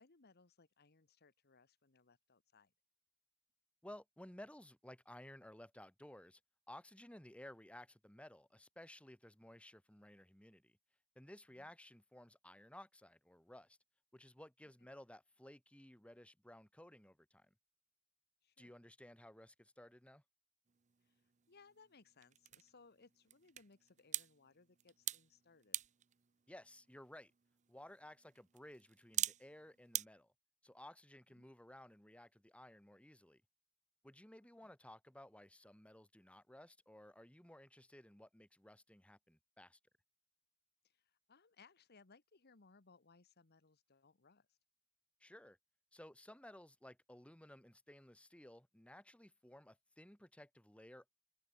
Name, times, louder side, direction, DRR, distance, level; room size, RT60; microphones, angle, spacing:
voice 1, 0.0-2.7 11.5-11.7 14.8-14.9 18.4-18.7 21.0-25.8 31.3-31.4 34.6-34.7 40.8-44.6, left 4 dB, 50° left, 1.2 m, -67 dB
voice 2, 3.8-6.4 6.7-10.8 11.1-13.8 14.1-17.5 18.6-20.2 26.5-27.3 27.7-30.3 30.6-33.4 34.0-39.8 45.2-45.6 45.9-51.0, left 1 dB, 5° left, 1.3 m, -57 dB
sound 1, 20.7-30.1, right 12 dB, 35° right, 0.5 m, -47 dB
head